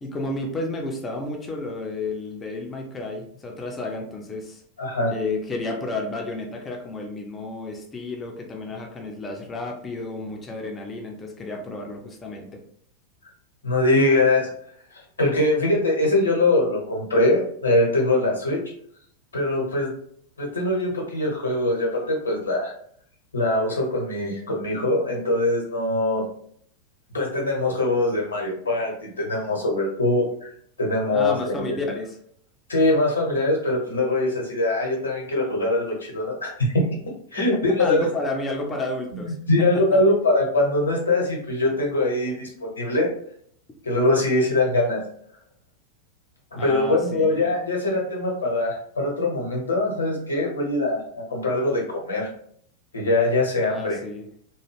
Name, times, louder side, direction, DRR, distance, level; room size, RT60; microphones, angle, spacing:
voice 1, 0.0-4.6 5.1-12.6 31.1-32.2 37.8-39.4 39.9-40.0 46.6-47.4 53.7-54.2, left 2 dB, 20° left, 1 dB, 0.5 m, -31 dB
voice 2, 4.8-5.1 13.6-14.5 14.9-18.6 19.3-19.9 20.4-22.7 23.3-26.2 27.1-30.5 30.8-31.8 32.7-36.8 37.3-38.0 39.1-43.1 43.8-45.0 46.5-52.3 52.9-54.0, left 2 dB, 70° left, -2 dB, 0.9 m, -22 dB
3.0 x 2.2 x 3.3 m, 0.65 s
figure-of-eight pair, 90°, 0 cm